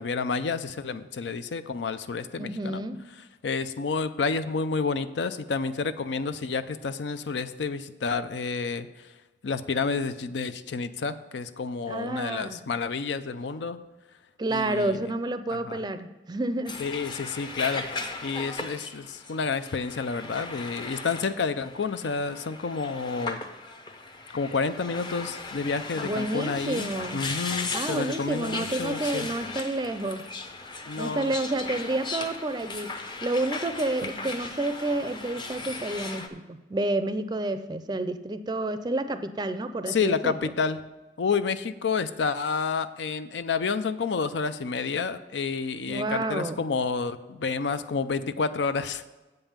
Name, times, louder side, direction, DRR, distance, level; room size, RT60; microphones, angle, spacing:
voice 1, 0.0-2.8 3.4-9.1 9.4-13.8 14.5-15.1 15.5-15.8 16.8-23.4 24.3-29.3 30.9-31.3 39.9-40.8 41.2-49.0, left 5 dB, 85° left, 12 dB, 0.5 m, -30 dB
voice 2, 2.4-3.0 11.9-12.6 14.4-16.8 26.0-27.2 27.7-30.3 31.0-33.0 33.2-40.5 45.9-46.6, right 2 dB, 25° right, 11 dB, 0.4 m, -30 dB
sound 1, 16.7-36.3, left 3 dB, 25° left, 0.6 m, -37 dB
7.8 x 5.4 x 7.3 m, 1.1 s
head